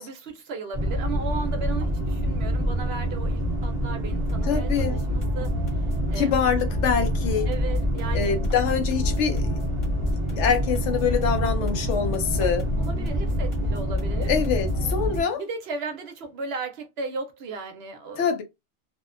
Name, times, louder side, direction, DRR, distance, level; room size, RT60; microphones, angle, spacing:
voice 1, 0.0-5.5 5.9-6.3 7.5-8.4 10.3-10.6 12.8-14.3 15.4-18.4, right 4 dB, 65° right, 0.7 m, -35 dB
sound 1, 0.7-15.2, equal, 15° right, 0.6 m, -26 dB
sound 2, 4.3-15.4, left 2 dB, 35° left, 0.6 m, -43 dB
voice 2, 4.5-5.0 6.2-7.5 8.1-9.6 10.4-12.7 14.3-15.4 18.2-18.4, left 7 dB, 70° left, 0.8 m, -25 dB
2.6 x 2.1 x 2.4 m
omnidirectional pair, 1.3 m